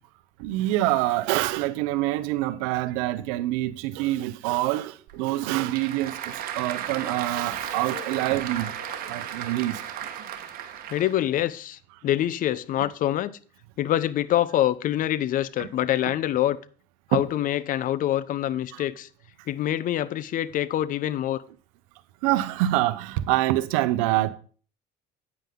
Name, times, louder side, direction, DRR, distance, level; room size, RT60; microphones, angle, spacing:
voice 1, 0.4-6.1 6.6-8.7 9.1-9.8 15.6-15.7 17.1-17.2 22.2-24.3, right 16 dB, 90° right, 0.7 m, -25 dB
Applause / Crowd, 5.1-11.3, right 10 dB, 60° right, 1.3 m, -35 dB
voice 2, 7.0-8.2 8.5-8.7 9.0-9.1 10.9-13.4 13.8-16.6 17.1-19.1 19.5-21.4, left 12 dB, 55° left, 0.7 m, -26 dB
9.2 x 9.0 x 3.7 m
supercardioid pair, 95°, 17 cm